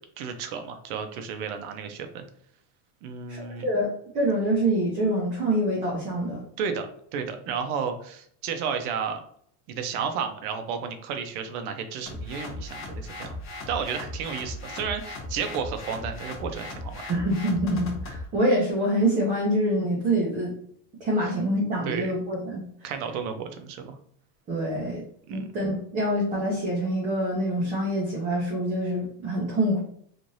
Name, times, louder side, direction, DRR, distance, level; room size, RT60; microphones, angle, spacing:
voice 1, 0.2-2.2 3.0-3.6 6.6-6.9 7.1-9.2 9.7-13.4 13.7-17.0 21.2-21.3 21.9-22.1 22.8-24.0 25.3-25.5, right 6 dB, 75° right, 6 dB, 0.7 m, -32 dB
voice 2, 3.3-3.9 4.1-6.4 17.0-20.5 21.0-22.6 24.5-25.0 25.3-29.8, right 1 dB, 20° right, -4 dB, 0.5 m, -25 dB
sound 1, 12.1-18.3, left 2 dB, 30° left, 0.7 m, -37 dB
3.1 x 2.5 x 2.6 m, 0.65 s
supercardioid pair, 160°, 44 cm